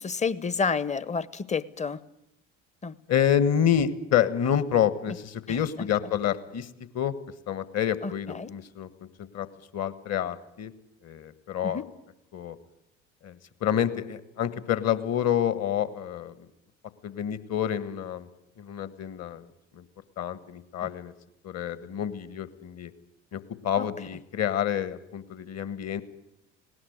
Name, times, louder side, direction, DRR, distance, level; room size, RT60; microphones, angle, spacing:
voice 1, 0.0-2.0 2.8-2.9 5.5-5.6 8.0-8.5 11.6-11.9 23.8-23.9, left 5 dB, 20° left, 20 dB, 0.9 m, -30 dB
voice 2, 3.1-6.7 6.9-7.1 7.5-9.5 9.7-10.7 11.0-11.8 12.3-12.6 13.2-16.5 17.0-18.3 18.6-19.5 19.7-19.8 20.2-21.1 21.4-22.9 23.3-26.0, left 9 dB, 40° left, 16 dB, 1.6 m, -28 dB
19.5 x 18.0 x 9.5 m, 0.84 s
figure-of-eight pair, 60°, 38 cm